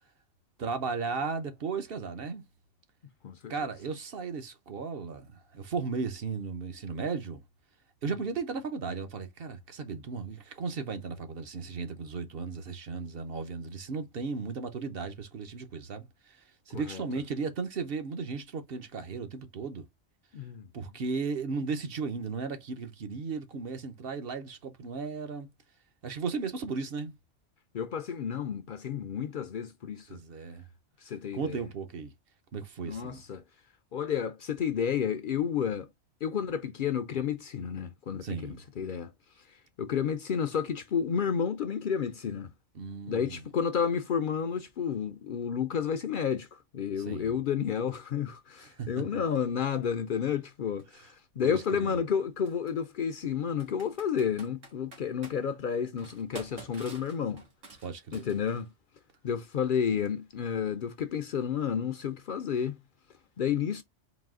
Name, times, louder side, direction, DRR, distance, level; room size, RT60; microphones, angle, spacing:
voice 1, 0.6-2.4 3.5-7.4 8.0-19.9 20.7-25.5 26.0-27.1 30.1-30.6 31.3-32.1 32.5-33.2 38.2-38.6 42.7-43.4 47.0-47.4 48.6-48.9 51.4-52.0 57.8-58.3, right 4 dB, 55° right, 0.9 m, -35 dB
voice 2, 20.3-20.7 27.7-30.2 31.0-31.6 32.8-33.4 33.9-35.9 36.2-39.1 39.8-42.5 43.1-57.4 58.1-58.7 59.2-62.8 63.4-63.8, left 7 dB, 55° left, 0.6 m, -31 dB
Computer keyboard, 50.8-50.9 52.5-52.7 53.6-55.4 56.0-58.7, right 3 dB, 85° right, 1.8 m, -48 dB
4.0 x 2.6 x 3.6 m
omnidirectional pair, 1.2 m